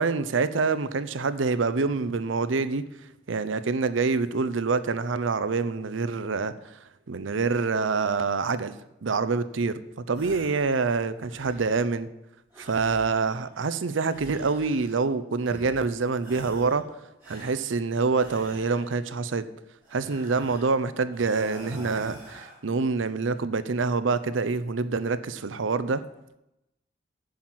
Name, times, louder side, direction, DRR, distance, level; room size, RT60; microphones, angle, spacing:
voice 1, 0.0-2.9 3.3-6.8 7.1-8.8 9.0-9.8 10.1-12.1 12.6-16.8 17.3-19.5 19.9-26.0, right 4 dB, 90° right, 0.6 m, -26 dB
sound 1, 10.1-10.7 11.0-11.9 12.5-13.6 14.0-15.1 15.4-15.9 16.2-16.8 17.2-19.1 19.8-20.8 21.1-22.6, equal, 10° right, 4.6 m, -46 dB
8.7 x 5.9 x 7.8 m
head